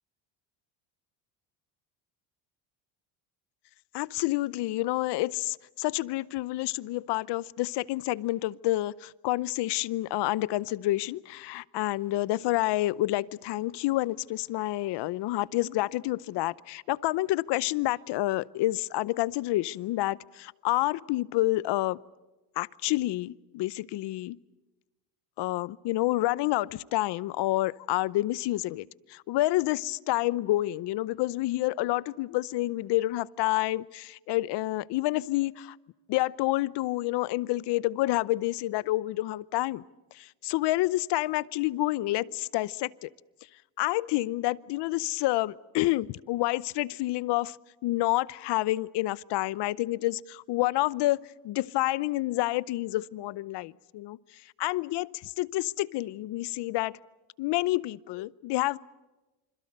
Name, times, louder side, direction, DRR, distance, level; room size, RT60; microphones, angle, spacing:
voice 1, 3.9-22.0 22.6-24.4 25.4-35.8 36.1-39.8 40.1-43.1 43.8-47.6 47.8-57.0 57.4-58.8, left 17 dB, 65° left, 0.8 m, -29 dB
27.5 x 26.5 x 6.7 m
cardioid pair, 125°, 46 cm